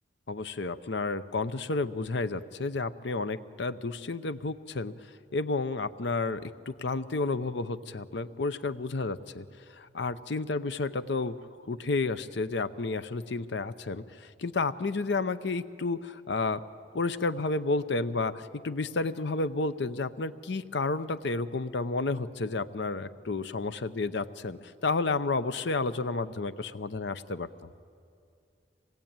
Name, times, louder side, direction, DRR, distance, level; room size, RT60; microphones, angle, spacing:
voice 1, 0.3-4.9 5.3-9.4 9.7-11.4 11.7-16.6 16.9-27.5, left 3 dB, 65° left, 13 dB, 0.7 m, -31 dB
26.0 x 19.0 x 8.9 m, 2.4 s
head